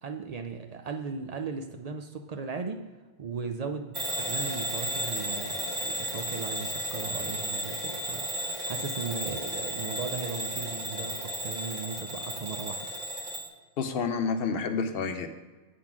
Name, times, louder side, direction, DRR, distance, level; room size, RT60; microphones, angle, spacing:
voice 1, 0.0-2.8 3.2-12.9, right 5 dB, 65° right, 6 dB, 0.3 m, -37 dB
Bell / Alarm, 3.9-13.5, right 1 dB, 40° right, 1.3 m, -34 dB
voice 2, 13.8-15.3, left 5 dB, 60° left, 8 dB, 0.8 m, -29 dB
8.3 x 3.8 x 5.9 m, 1.3 s
omnidirectional pair, 1.2 m